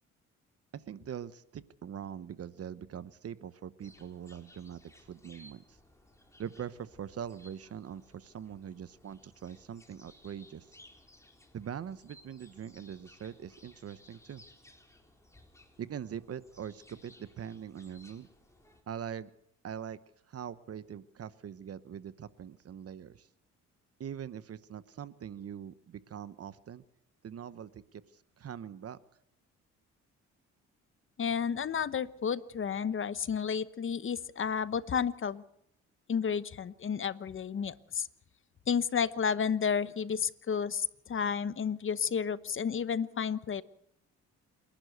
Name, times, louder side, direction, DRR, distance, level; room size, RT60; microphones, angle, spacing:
voice 1, 0.7-5.8 6.4-10.7 11.5-14.4 15.8-18.3 18.9-19.3 19.6-20.0 20.3-23.3 24.0-26.8 27.2-29.0, right 8 dB, 50° right, 15 dB, 1.0 m, -42 dB
sound 1, 3.8-18.8, left 1 dB, 10° left, 4.3 m, -60 dB
voice 2, 31.2-35.4 36.1-38.1 38.7-43.6, left 7 dB, 40° left, 15 dB, 1.1 m, -31 dB
28.0 x 11.5 x 8.1 m, 0.75 s
cardioid pair, 90°, 30 cm